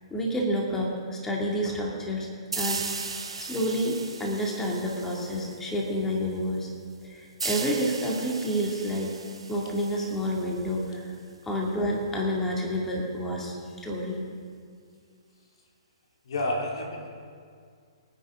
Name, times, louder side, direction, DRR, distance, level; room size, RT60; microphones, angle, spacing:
voice 1, 0.1-2.3 2.6-2.9 3.4-6.7 7.0-9.1 9.5-11.1 11.5-13.5 13.8-14.2, equal, 10° left, -2 dB, 2.4 m, -29 dB
sound 1, 2.5-5.9 7.4-10.9, right 4 dB, 85° right, 1.5 m, -37 dB
voice 2, 16.2-17.1, left 1 dB, 65° left, 1 dB, 2.5 m, -30 dB
24.0 x 9.9 x 3.8 m, 2.2 s
hypercardioid pair, 125°, 3 cm